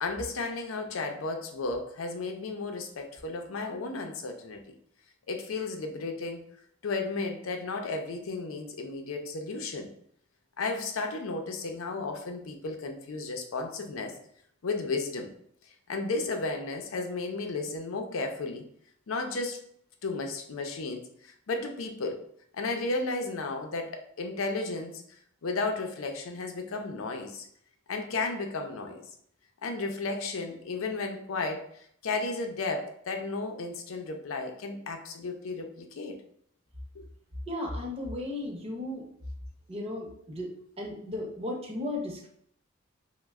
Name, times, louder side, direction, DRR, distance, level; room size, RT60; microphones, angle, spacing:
voice 1, 0.0-4.7 5.3-6.4 6.8-9.9 10.6-14.2 14.6-15.3 15.9-18.7 19.1-19.6 20.0-22.2 22.5-23.9 24.2-27.5 27.9-29.1 29.6-36.2 36.9-37.0, left 3 dB, 90° left, 5 dB, 0.5 m, -33 dB
voice 2, 37.5-39.0 39.7-42.3, left 1 dB, 30° right, 0 dB, 0.7 m, -35 dB
3.1 x 2.1 x 3.4 m, 0.66 s
head